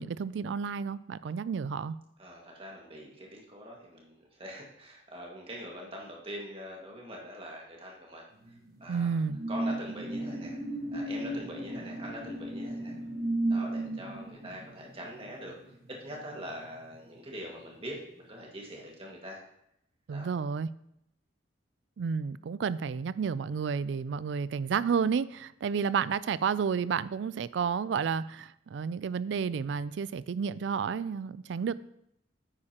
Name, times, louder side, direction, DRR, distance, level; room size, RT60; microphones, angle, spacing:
voice 1, 0.0-2.0 8.9-9.4 20.1-20.7 22.0-31.8, right 6 dB, 70° right, 18 dB, 0.3 m, -31 dB
voice 2, 2.2-8.2 8.8-9.2 9.5-10.6 10.9-12.9 13.5-15.5 15.9-19.4 20.1-20.3, equal, 30° right, -1 dB, 1.9 m, -43 dB
sound 1, 8.4-17.4 17.7-18.0, right 1 dB, 55° right, 1.3 m, -35 dB
9.8 x 8.6 x 2.9 m, 0.78 s
head